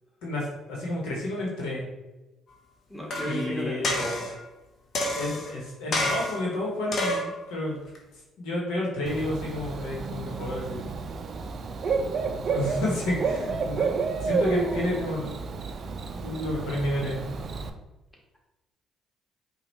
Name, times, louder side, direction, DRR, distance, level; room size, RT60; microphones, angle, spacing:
voice 1, 0.2-1.9 3.2-4.0 5.1-7.8 8.4-10.9 12.4-15.4 16.1-17.2, left 1 dB, 75° left, -3 dB, 1.1 m, -31 dB
voice 2, 2.9-4.3, right 1 dB, 10° left, -3 dB, 1.5 m, -33 dB
sound 1, 3.1-3.4 3.8-4.4 4.9-5.5 5.9-6.5 6.9-7.4 7.9-8.0, left 1 dB, 55° left, 0.8 m, -28 dB
Bird / Cricket, 9.1-17.7, right 4 dB, 50° right, 0.4 m, -30 dB
5.0 x 2.3 x 3.1 m, 1.1 s
hypercardioid pair, 55°, 0 cm